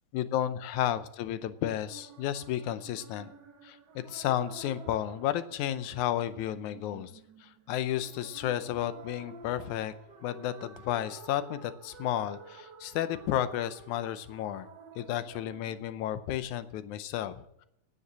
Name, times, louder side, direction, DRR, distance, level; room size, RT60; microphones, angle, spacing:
voice 1, 0.1-3.3 3.6-7.1 7.4-9.9 10.2-14.7 15.0-17.7, left 11 dB, 80° left, 13 dB, 2.1 m, -32 dB
sound 1, 1.9-15.8, right 5 dB, 60° right, 1.2 m, -51 dB
9.7 x 9.4 x 7.3 m, 0.76 s
omnidirectional pair, 3.5 m